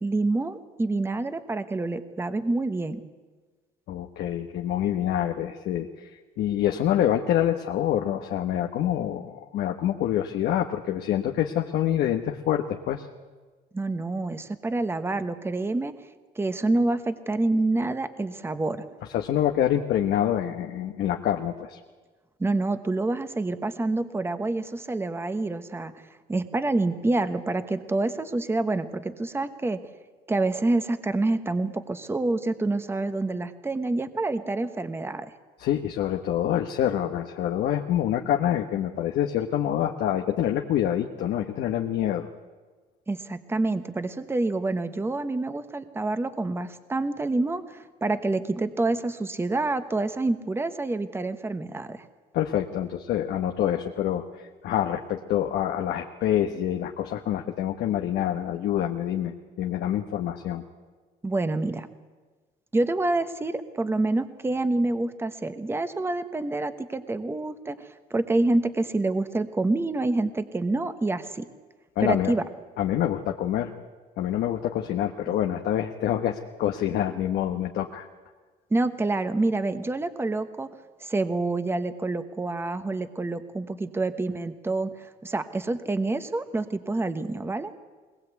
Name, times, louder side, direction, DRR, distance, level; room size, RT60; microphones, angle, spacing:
voice 1, 0.0-3.0 13.7-15.9 16.4-18.8 22.4-29.8 30.3-35.3 43.1-52.0 61.2-61.9 62.7-71.5 72.0-72.5 78.7-80.7 81.0-87.7, right 2 dB, 15° right, 10 dB, 1.1 m, -27 dB
voice 2, 3.9-6.1 6.4-13.0 19.1-21.8 35.6-42.3 52.3-60.6 72.0-72.3 72.8-73.7 74.2-78.1, left 11 dB, 75° left, 3 dB, 1.2 m, -26 dB
21.5 x 20.0 x 8.3 m, 1.4 s
cardioid pair, 110°, 17 cm